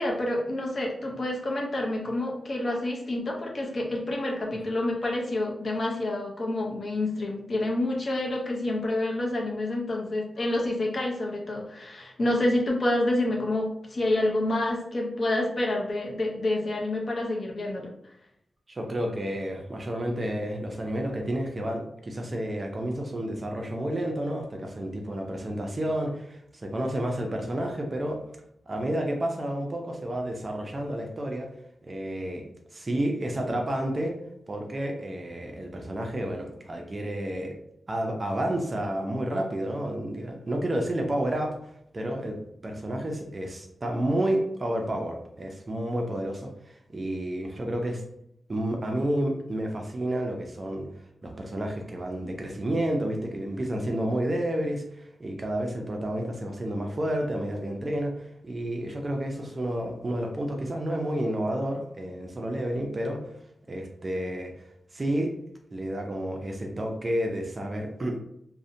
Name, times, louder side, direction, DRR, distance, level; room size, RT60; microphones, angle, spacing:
voice 1, 0.0-17.9, left 1 dB, 45° left, -1 dB, 0.6 m, -28 dB
voice 2, 18.7-28.2 28.7-31.5 31.8-32.4 32.7-34.2 34.5-37.6 37.9-41.6 41.9-48.0 48.5-50.9 51.2-63.4 63.7-64.7 64.9-65.3 65.7-68.2, right 1 dB, 30° right, 2 dB, 0.4 m, -30 dB
2.6 x 2.0 x 2.5 m, 0.74 s
wide cardioid pair, 120°, 0 cm